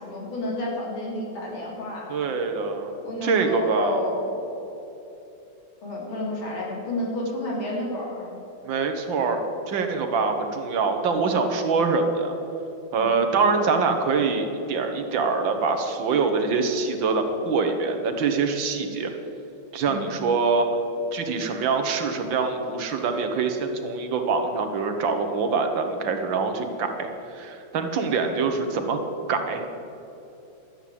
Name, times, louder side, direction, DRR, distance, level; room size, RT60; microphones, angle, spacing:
voice 1, 0.0-2.1 3.0-4.8 5.8-8.3 12.9-13.2 19.9-20.1, left 1 dB, 85° left, -4 dB, 3.9 m, -31 dB
voice 2, 2.1-3.0 3.2-4.0 8.6-9.4 9.7-12.4 12.9-19.1 19.7-20.7 21.1-27.1 27.3-29.0 29.3-29.7, right 4 dB, 70° right, 6 dB, 1.9 m, -24 dB
12.0 x 8.0 x 8.5 m, 2.9 s
omnidirectional pair, 2.2 m